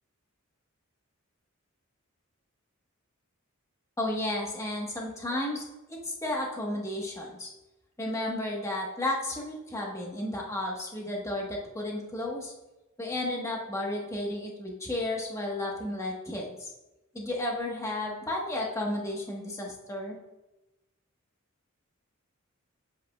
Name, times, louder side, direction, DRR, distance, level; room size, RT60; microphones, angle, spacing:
voice 1, 4.0-7.5 8.0-12.5 13.0-16.7 17.1-20.2, left 1 dB, 15° left, -2 dB, 1.3 m, -33 dB
8.5 x 7.6 x 2.3 m, 1.0 s
head